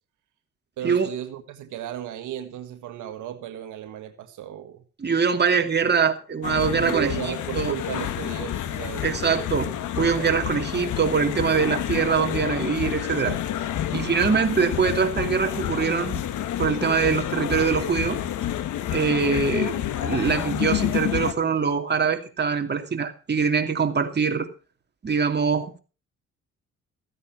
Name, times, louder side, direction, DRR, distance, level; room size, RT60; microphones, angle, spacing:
voice 1, 0.8-4.8 6.8-9.7 10.2-10.3, right 11 dB, 85° right, 1.6 m, -35 dB
voice 2, 5.0-7.1 7.5-7.7 9.0-9.7 10.0-13.4 13.9-16.2 16.6-18.2 18.9-24.5 25.0-25.8, right 6 dB, 35° right, 2.5 m, -23 dB
sound 1, 6.4-21.3, left 11 dB, 75° left, 1.5 m, -29 dB
15.0 x 9.7 x 5.7 m
cardioid pair, 90°, 30 cm